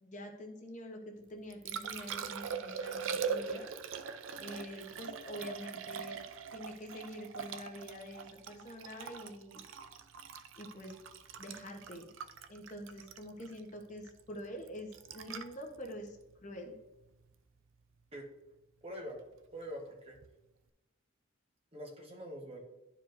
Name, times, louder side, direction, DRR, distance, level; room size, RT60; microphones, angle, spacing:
voice 1, 0.0-3.7 4.4-6.2 6.5-9.6 10.6-10.9 11.4-12.1 12.5-16.2 16.4-16.7, equal, 35° left, 2 dB, 0.9 m, -46 dB
Liquid, 1.2-17.3 20.1-20.3, right 6 dB, 75° right, 0.5 m, -42 dB
voice 2, 18.8-19.2 19.5-20.2 21.7-22.6, equal, 30° right, 0 dB, 1.3 m, -44 dB
12.0 x 4.8 x 2.6 m, 0.98 s
head